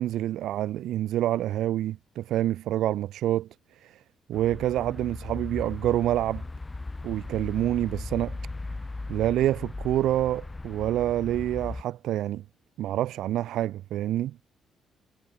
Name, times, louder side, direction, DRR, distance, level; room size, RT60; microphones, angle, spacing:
voice 1, 0.0-3.5 3.8-4.0 4.3-6.4 7.0-8.4 9.1-12.4 12.8-14.4, right 13 dB, 80° right, 2.9 m, -27 dB
sound 1, 4.3-11.8, left 2 dB, 20° left, 2.6 m, -38 dB
cardioid pair, 90°, 0 cm